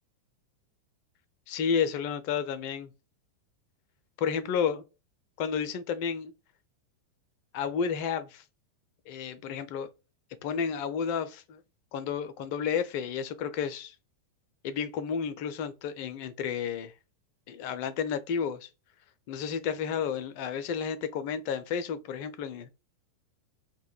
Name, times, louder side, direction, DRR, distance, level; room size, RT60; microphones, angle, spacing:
voice 1, 1.5-2.9 4.2-4.8 5.4-6.3 7.5-8.4 9.1-9.9 10.4-11.6 11.9-14.0 14.6-16.9 17.5-18.7 19.3-22.7, left 7 dB, 45° left, 0.4 m, -31 dB
2.2 x 2.1 x 2.9 m
figure-of-eight pair, 90°, 0 cm